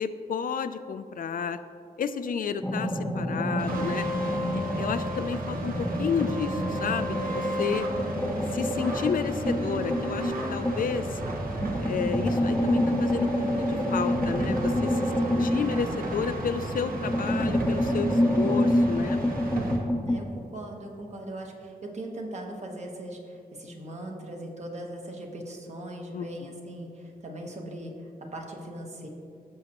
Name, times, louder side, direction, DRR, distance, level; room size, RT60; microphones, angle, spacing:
voice 1, 0.0-1.6 2.0-4.1 4.5-7.9 8.5-11.2 11.8-19.2 26.1-26.5, left 6 dB, 65° left, 10 dB, 0.4 m, -31 dB
sound 1, 2.6-5.1 5.4-11.0 11.5-16.5 16.9-20.2, equal, 5° left, 0.7 m, -28 dB
sound 2, 3.6-19.8, equal, 70° right, 1.4 m, -32 dB
voice 2, 15.1-16.0 20.0-29.1, right 1 dB, 45° right, 1 dB, 1.2 m, -40 dB
16.5 x 6.3 x 3.0 m, 2.3 s
wide cardioid pair, 160°, 16 cm